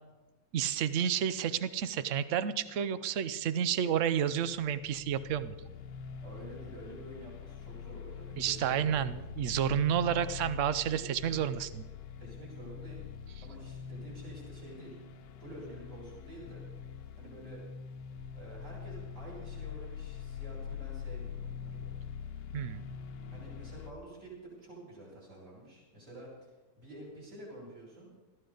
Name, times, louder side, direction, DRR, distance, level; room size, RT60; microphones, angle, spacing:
voice 1, 0.5-5.5 8.4-11.8 22.5-22.8, right 9 dB, 70° right, 14 dB, 0.7 m, -30 dB
sound 1, 4.4-23.9, left 7 dB, 70° left, 1.4 m, -44 dB
voice 2, 6.2-9.1 10.0-10.3 10.8-11.5 12.2-15.0 15.4-16.6 17.2-17.6 18.3-21.9 23.3-28.1, right 1 dB, 40° right, -5 dB, 6.2 m, -49 dB
20.0 x 14.5 x 3.9 m, 1.3 s
omnidirectional pair, 2.1 m